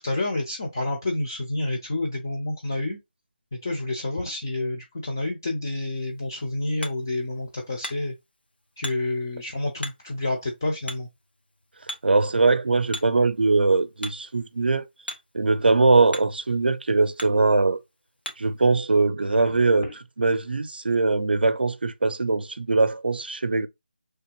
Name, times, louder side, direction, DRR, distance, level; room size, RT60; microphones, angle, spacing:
voice 1, 0.0-3.0 3.5-8.1 8.8-11.1 19.4-19.5 19.8-19.9, left 2 dB, 20° left, 0.4 m, -29 dB
Hammer, 5.9-18.6, left 1 dB, 80° left, 1.2 m, -43 dB
voice 2, 12.0-14.9 15.3-17.8 18.4-19.9 20.2-23.7, right 3 dB, 75° right, 0.5 m, -21 dB
4.0 x 3.3 x 2.9 m
figure-of-eight pair, 175°, 5 cm